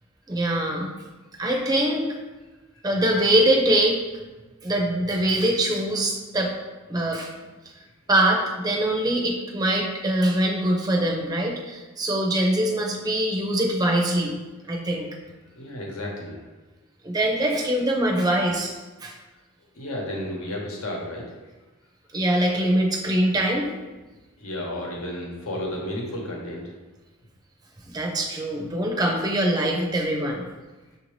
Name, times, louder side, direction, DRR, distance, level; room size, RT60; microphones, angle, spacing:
voice 1, 0.3-0.9 1.3-2.1 2.8-4.0 4.6-6.5 6.9-7.3 8.1-14.3 14.7-15.1 17.0-19.1 22.1-23.7 27.9-30.4, right 1 dB, 20° right, 0 dB, 0.5 m, -23 dB
voice 2, 15.5-16.4 19.7-21.3 24.4-26.7, left 1 dB, 85° left, -1 dB, 1.0 m, -32 dB
6.2 x 2.6 x 3.1 m, 1.2 s
head